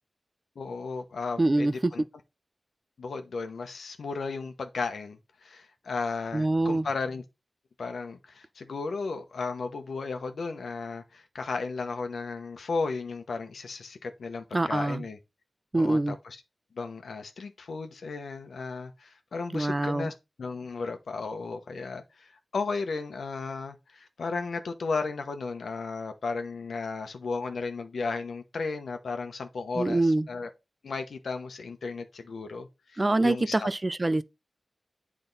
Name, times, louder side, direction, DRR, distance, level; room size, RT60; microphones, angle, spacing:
voice 1, 0.5-2.0 3.0-7.2 7.8-15.2 15.7-16.4 16.7-20.1 20.4-30.5 30.8-33.7, left 4 dB, 85° left, 1.0 m, -34 dB
voice 2, 1.4-1.9 6.3-6.8 14.5-15.0 15.7-16.2 19.5-20.1 29.8-30.3 33.0-34.2, right 2 dB, 30° right, 0.4 m, -25 dB
8.9 x 3.6 x 4.0 m
wide cardioid pair, 70°, 0 cm